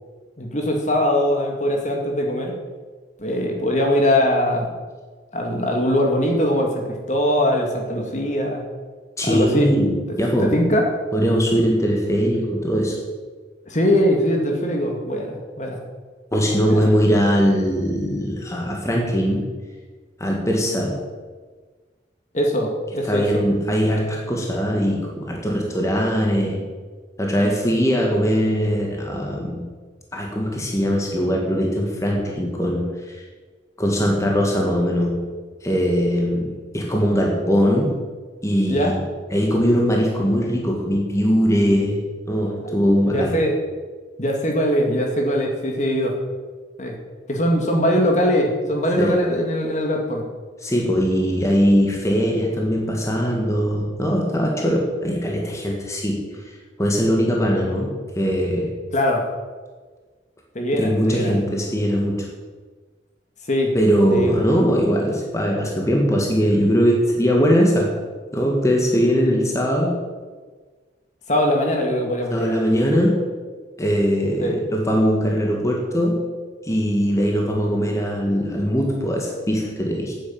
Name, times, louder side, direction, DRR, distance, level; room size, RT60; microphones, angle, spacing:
voice 1, 0.4-2.6 3.2-4.7 5.3-8.6 9.2-9.7 10.4-10.9 13.7-15.8 16.7-16.8 22.3-23.5 38.7-38.9 43.0-43.6 44.2-46.2 46.8-47.0 47.3-50.2 58.9-59.3 60.5-61.3 63.5-63.7 64.1-64.5 71.3-72.6 74.4-74.6, equal, 40° left, 1 dB, 2.2 m, -21 dB
voice 2, 9.2-10.5 11.1-13.0 16.3-19.5 20.2-21.0 23.1-26.6 27.2-29.7 30.1-33.2 33.8-35.3 35.6-38.0 38.4-39.0 39.3-43.4 49.0-49.1 50.6-56.3 56.8-58.7 60.7-62.3 63.7-68.0 68.3-70.0 72.3-73.2 73.8-76.2 76.6-80.1, equal, 15° left, -1 dB, 1.9 m, -21 dB
9.5 x 9.4 x 8.6 m, 1.4 s
head